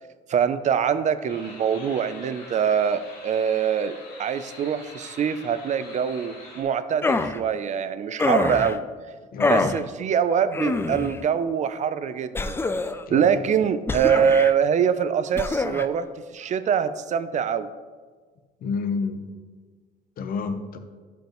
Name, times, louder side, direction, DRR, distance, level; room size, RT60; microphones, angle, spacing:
voice 1, 0.3-8.9 9.4-12.6 13.1-16.1 16.3-17.7, right 7 dB, 45° right, 12 dB, 0.5 m, -24 dB
sound 1, 1.3-6.6, left 2 dB, 80° left, 2.3 m, -45 dB
sound 2, 7.0-7.4 8.2-8.8 9.4-9.8 10.5-11.2 12.4-13.1 13.9-14.5 15.4-15.9, left 3 dB, 15° left, 0.3 m, -25 dB
voice 2, 9.3-9.7 13.1-13.2 18.6-19.3 20.2-20.8, left 5 dB, 60° left, 8 dB, 0.8 m, -29 dB
12.0 x 5.3 x 3.0 m, 1.5 s
cardioid pair, 110°, 17 cm